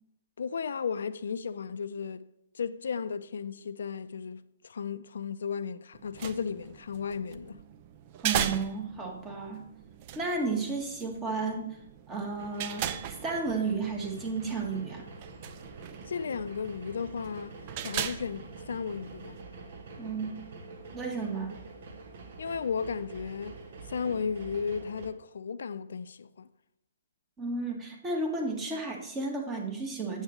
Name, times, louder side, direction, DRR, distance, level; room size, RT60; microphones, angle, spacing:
voice 1, 0.4-2.3 2.5-7.6 16.0-17.6 17.8-19.4 22.4-23.6 23.9-26.5, left 6 dB, 70° left, 0.5 m, -34 dB
sound 1, 5.9-19.4, right 10 dB, 40° right, 0.5 m, -39 dB
voice 2, 8.2-9.6 10.2-11.8 12.1-15.1 20.0-20.4 20.9-21.6 27.4-30.2, right 3 dB, 20° right, 1.7 m, -33 dB
sound 2, 12.4-25.1, right 3 dB, 55° right, 1.3 m, -46 dB
8.7 x 7.2 x 3.3 m
hypercardioid pair, 135°, 0 cm